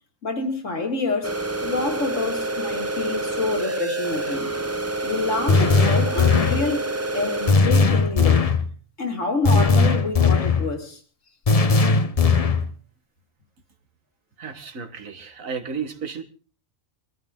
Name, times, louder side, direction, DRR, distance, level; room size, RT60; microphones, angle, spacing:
voice 1, 0.2-4.5 5.0-8.4 9.0-11.0, left 3 dB, 65° left, 2.7 m, -27 dB
sound 1, 1.2-7.5, right 2 dB, 15° right, 0.5 m, -28 dB
sound 2, 5.5-6.7 7.5-8.6 9.4-10.7 11.5-12.7, left 4 dB, 35° left, 0.8 m, -18 dB
voice 2, 14.4-16.2, right 6 dB, 75° right, 1.9 m, -33 dB
22.5 x 14.0 x 3.7 m
omnidirectional pair, 1.4 m